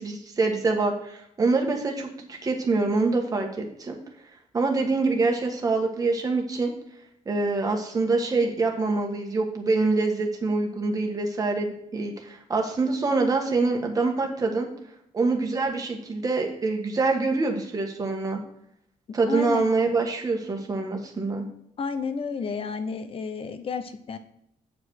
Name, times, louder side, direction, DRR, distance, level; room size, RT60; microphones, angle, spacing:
voice 1, 0.0-4.0 4.5-6.7 7.2-14.7 15.1-18.4 19.1-21.5, right 3 dB, 25° right, 2 dB, 1.4 m, -25 dB
voice 2, 19.3-19.6 21.8-24.2, left 5 dB, 45° left, 10 dB, 0.7 m, -31 dB
8.4 x 5.0 x 6.0 m, 0.74 s
wide cardioid pair, 170°, 14 cm